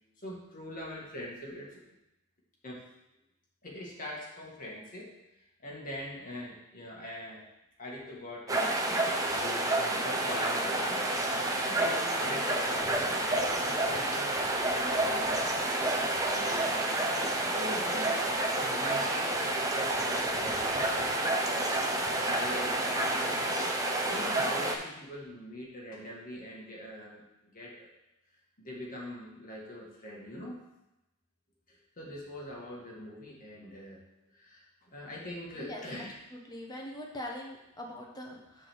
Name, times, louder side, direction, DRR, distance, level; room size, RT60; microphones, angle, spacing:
voice 1, 0.2-1.8 2.6-2.9 3.6-5.1 5.6-7.4 7.8-21.8 22.2-23.5 23.8-27.9 28.6-30.6 31.7-34.0 34.3-36.2, left 1 dB, 40° left, -3 dB, 1.9 m, -43 dB
sound 1, 8.5-24.8, right 1 dB, 15° right, 0.7 m, -29 dB
voice 2, 36.3-38.7, left 1 dB, 20° left, 0 dB, 1.1 m, -42 dB
7.4 x 3.5 x 6.3 m, 0.94 s
head